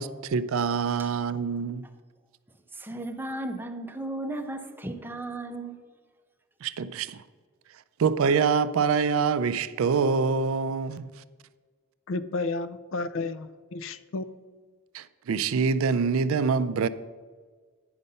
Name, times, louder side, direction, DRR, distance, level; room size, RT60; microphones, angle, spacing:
voice 1, 0.0-1.8 6.6-7.2 8.0-11.1 14.9-16.9, right 5 dB, 70° right, 0.4 m, -25 dB
voice 2, 2.7-5.8, right 1 dB, 10° right, 0.6 m, -35 dB
voice 3, 12.1-14.4, left 3 dB, 60° left, 0.4 m, -32 dB
9.4 x 5.3 x 5.5 m
head